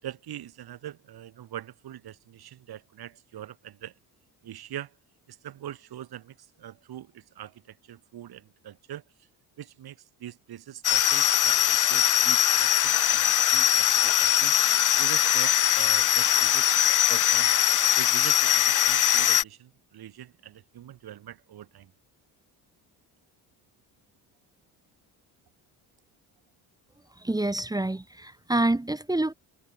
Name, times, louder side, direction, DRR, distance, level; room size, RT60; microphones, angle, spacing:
voice 1, 0.0-3.9 4.4-5.0 5.3-9.0 9.6-14.5 15.0-16.7 17.1-17.6 18.0-21.9, right 11 dB, 65° right, 7.3 m, -42 dB
sound 1, 10.8-19.4, left 11 dB, 50° left, 1.2 m, -21 dB
voice 2, 27.2-29.3, right 2 dB, 10° right, 1.0 m, -27 dB
supercardioid pair, 80°, 41 cm